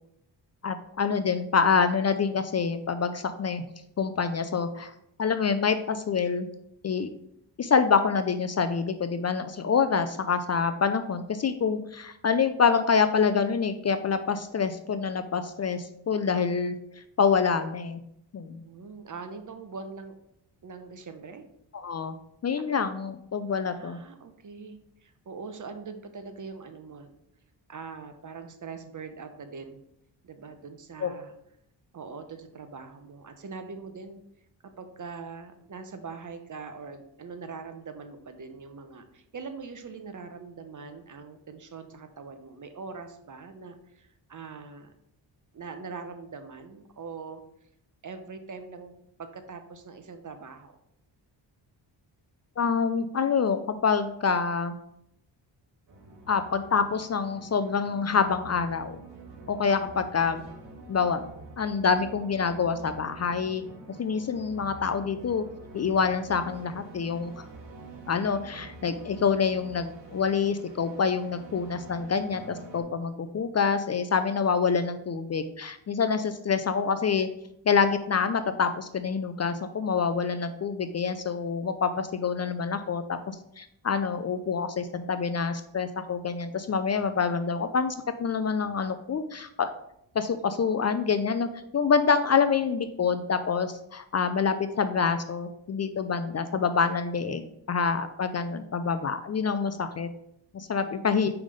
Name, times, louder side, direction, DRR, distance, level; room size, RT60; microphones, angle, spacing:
voice 1, 0.6-3.6 4.0-4.9 5.2-6.5 6.8-7.1 7.6-18.0 18.3-18.6 21.7-22.1 22.4-24.0 31.0-31.1 52.6-54.8 56.3-59.0 59.5-60.4 60.9-61.3 61.6-63.6 64.0-65.4 65.7-67.4 68.1-77.3 77.7-87.9 88.2-89.7 90.1-91.5 91.7-100.1 100.5-101.3, left 5 dB, 35° left, 10 dB, 0.5 m, -26 dB
voice 2, 18.6-20.1 20.6-21.4 23.7-27.1 27.7-29.8 30.2-31.3 31.9-34.2 34.8-44.9 45.5-47.4 48.0-48.9 49.2-50.8 59.8-60.0 100.8-101.1, right 4 dB, 40° right, 8 dB, 0.9 m, -42 dB
sound 1, 55.9-72.8, right 3 dB, 60° right, 1.6 m, -47 dB
5.3 x 3.5 x 5.2 m, 0.77 s
supercardioid pair, 55°, 46 cm